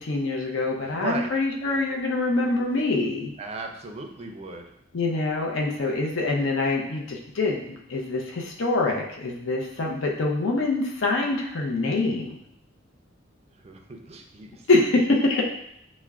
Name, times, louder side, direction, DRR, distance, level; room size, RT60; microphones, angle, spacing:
voice 1, 0.0-3.3 4.9-12.4 14.7-15.4, left 2 dB, 70° left, -1 dB, 0.6 m, -25 dB
voice 2, 0.8-1.3 3.4-4.7 13.6-14.5, right 3 dB, 30° right, 3 dB, 0.4 m, -36 dB
5.8 x 2.1 x 2.3 m, 0.74 s
head